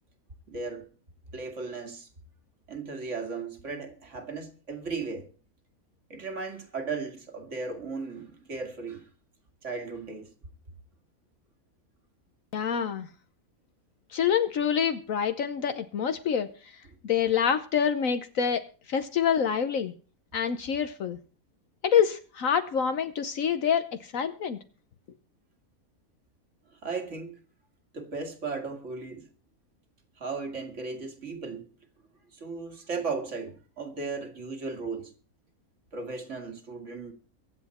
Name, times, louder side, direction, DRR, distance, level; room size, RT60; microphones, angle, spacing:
voice 1, 0.5-0.9 1.3-2.1 2.7-5.3 6.1-9.1 9.6-10.3 26.7-27.4 27.9-29.3 30.2-31.7 32.3-35.1 35.9-37.1, right 4 dB, 55° right, 2.4 m, -36 dB
voice 2, 12.5-13.1 14.1-16.5 17.0-18.6 18.9-19.9 20.3-21.2 21.8-24.6, left 7 dB, 70° left, 1.3 m, -26 dB
23.0 x 8.0 x 4.3 m
omnidirectional pair, 1.5 m